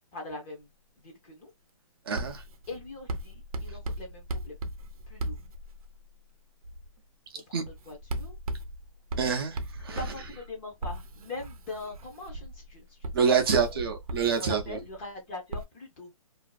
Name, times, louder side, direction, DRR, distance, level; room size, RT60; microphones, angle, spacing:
voice 1, 0.1-0.7 1.0-1.5 2.7-4.6 5.1-5.4 7.3-8.4 9.9-13.1 13.6-13.8 14.4-16.1, left 2 dB, 20° left, 0.6 m, -42 dB
voice 2, 2.1-2.4 7.5-7.6 9.2-10.0 13.1-14.8, right 6 dB, 45° right, 0.5 m, -26 dB
Writing, 2.2-6.1 6.6-7.0 7.7-15.0 15.5-15.7, right 1 dB, 90° right, 0.6 m, -37 dB
2.5 x 2.4 x 2.3 m
hypercardioid pair, 165°, 18 cm